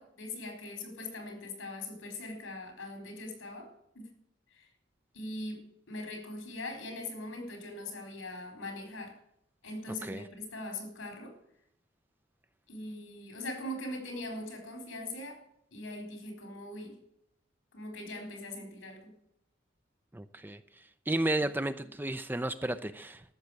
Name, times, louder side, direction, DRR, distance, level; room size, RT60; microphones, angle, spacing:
voice 1, 0.0-4.1 4.5-4.7 5.1-9.2 9.6-11.3 12.7-15.4 15.7-17.0 17.7-19.1, left 1 dB, 85° left, 3 dB, 4.2 m, -41 dB
voice 2, 20.1-20.6 21.1-23.2, right 1 dB, 10° right, 11 dB, 0.5 m, -32 dB
13.5 x 6.6 x 9.6 m, 0.75 s
head